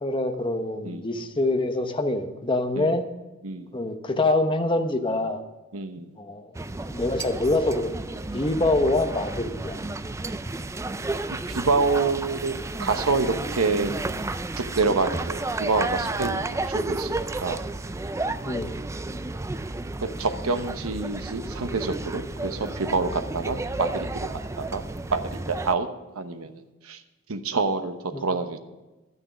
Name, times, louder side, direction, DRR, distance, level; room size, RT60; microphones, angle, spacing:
voice 1, 0.0-3.0 3.7-5.4 6.2-9.8 18.4-18.8 28.1-28.3, left 2 dB, 25° left, 7 dB, 0.9 m, -25 dB
voice 2, 5.7-6.1 11.5-13.9 14.6-17.6 20.0-24.8 25.1-25.9 26.1-27.0 27.3-28.6, right 4 dB, 85° right, 8 dB, 1.0 m, -27 dB
sound 1, 6.5-25.7, right 2 dB, 15° right, 0.3 m, -32 dB
11.5 x 9.7 x 6.1 m, 1.1 s
head